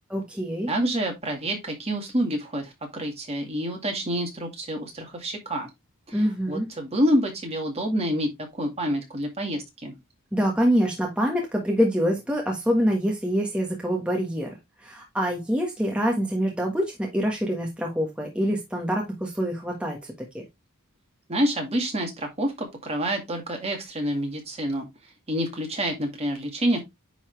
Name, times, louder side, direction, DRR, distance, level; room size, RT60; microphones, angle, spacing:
voice 1, 0.1-0.7 6.1-6.7 10.3-14.5 14.8-20.4, equal, 5° right, 1.5 m, -25 dB
voice 2, 0.7-5.7 6.1-9.9 21.3-24.9 25.3-26.8, equal, 30° right, 2.1 m, -27 dB
9.8 x 4.1 x 3.3 m
head